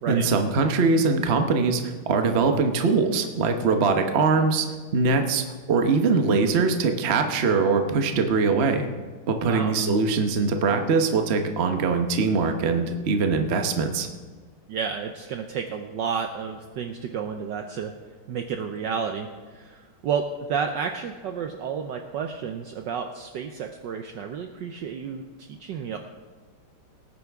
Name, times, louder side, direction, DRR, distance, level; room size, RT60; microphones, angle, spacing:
voice 1, 0.1-4.7 4.9-8.9 9.3-14.1, right 4 dB, 45° right, 5 dB, 0.8 m, -22 dB
voice 2, 14.7-17.9 18.3-26.0, right 6 dB, 70° right, 5 dB, 1.1 m, -31 dB
18.5 x 9.5 x 3.5 m, 1.5 s
omnidirectional pair, 2.4 m